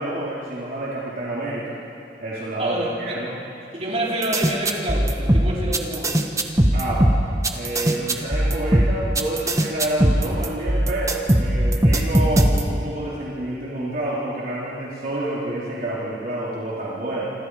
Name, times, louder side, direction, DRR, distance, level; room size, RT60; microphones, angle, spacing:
voice 1, 0.0-1.8 2.2-3.3 6.7-7.2 7.5-17.3, right 1 dB, 55° right, -7 dB, 3.7 m, -28 dB
voice 2, 2.6-2.9 3.7-6.3, right 1 dB, 35° right, -4 dB, 4.8 m, -27 dB
sound 1, 4.2-12.8, right 1 dB, 20° right, 1.4 m, -19 dB
27.5 x 26.5 x 4.9 m, 2.7 s
head